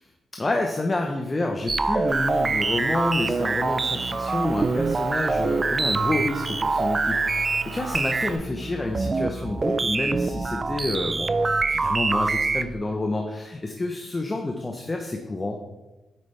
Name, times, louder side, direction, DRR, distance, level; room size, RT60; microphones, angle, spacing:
voice 1, 0.4-15.6, left 2 dB, 25° left, 3 dB, 0.7 m, -29 dB
sound 1, 1.7-12.8, right 3 dB, 35° right, 0.3 m, -25 dB
Motor vehicle (road) / Engine, 2.1-8.4, right 5 dB, 65° right, 1.0 m, -40 dB
8.4 x 5.0 x 3.3 m, 1.1 s
cardioid pair, 85°, 0 cm